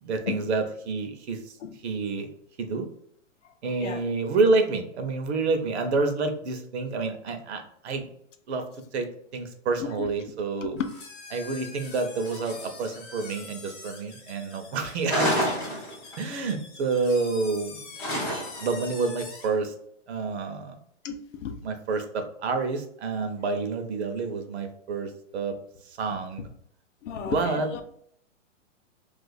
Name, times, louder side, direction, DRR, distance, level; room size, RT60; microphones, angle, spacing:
voice 1, 0.0-1.4 1.8-2.3 2.6-2.8 3.6-8.1 8.5-8.6 8.9-10.8 11.3-15.3 16.2-17.8 18.6-19.7 20.1-20.8 21.6-25.5 25.9-26.5 27.1-27.7, right 3 dB, 55° right, 6 dB, 0.7 m, -28 dB
voice 2, 3.4-4.0 9.8-10.1 10.6-10.8 21.0-21.5 27.0-27.8, left 7 dB, 70° left, 7 dB, 0.6 m, -34 dB
sound 1, 10.8-19.6, left 4 dB, 40° left, 1.0 m, -44 dB
sound 2, 15.1-16.3 18.0-18.8, equal, 5° left, 0.4 m, -27 dB
2.5 x 2.4 x 4.0 m, 0.66 s
hypercardioid pair, 140°, 39 cm